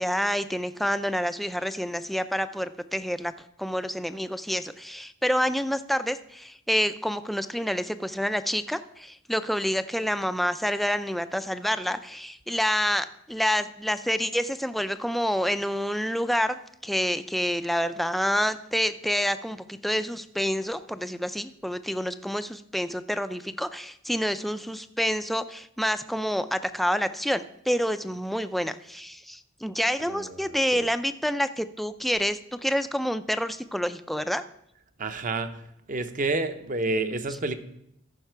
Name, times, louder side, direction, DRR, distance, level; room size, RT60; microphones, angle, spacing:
voice 1, 0.0-3.3 3.6-34.4, equal, ahead, 11 dB, 0.3 m, -28 dB
voice 2, 30.1-30.9 35.0-35.5 35.9-37.5, right 2 dB, 40° right, 9 dB, 0.7 m, -29 dB
14.5 x 5.8 x 4.5 m, 0.77 s
head